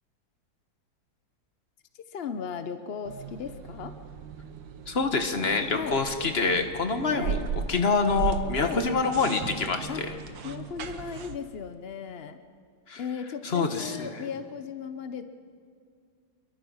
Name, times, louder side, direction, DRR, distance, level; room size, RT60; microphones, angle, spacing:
voice 1, 1.9-4.0 5.7-6.0 7.1-7.4 8.5-8.8 9.9-10.1 10.4-12.4 13.0-15.3, left 7 dB, 60° left, 9 dB, 0.6 m, -36 dB
sound 1, 3.1-11.4, right 6 dB, 80° right, 1.8 m, -37 dB
voice 2, 4.9-7.4 7.7-10.1 12.9-13.0 13.4-14.2, left 4 dB, 35° left, 6 dB, 1.5 m, -26 dB
28.0 x 22.5 x 5.6 m, 2.1 s
omnidirectional pair, 2.0 m